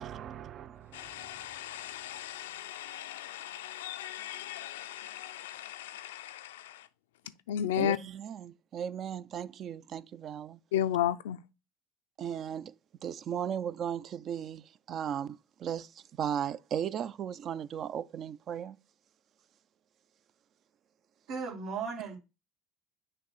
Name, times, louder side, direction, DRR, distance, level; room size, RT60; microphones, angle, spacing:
voice 1, 0.0-1.4 7.8-8.0 8.4-10.6 12.2-12.7 13.0-18.8, right 9 dB, 50° right, 0.4 m, -36 dB
voice 2, 0.9-6.9 7.3-8.0 10.7-11.4, left 11 dB, 90° left, 0.4 m, -35 dB
voice 3, 21.3-22.2, right 5 dB, 80° right, 2.0 m, -36 dB
6.6 x 2.6 x 5.5 m
supercardioid pair, 85°, 0 cm